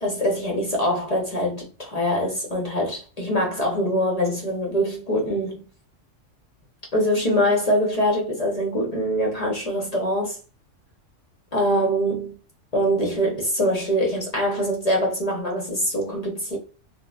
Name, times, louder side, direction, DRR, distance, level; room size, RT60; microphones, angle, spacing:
voice 1, 0.0-5.6 6.9-10.4 11.5-12.4 12.7-16.6, equal, 45° left, 0.5 m, -23 dB
3.0 x 2.2 x 2.2 m
omnidirectional pair, 1.3 m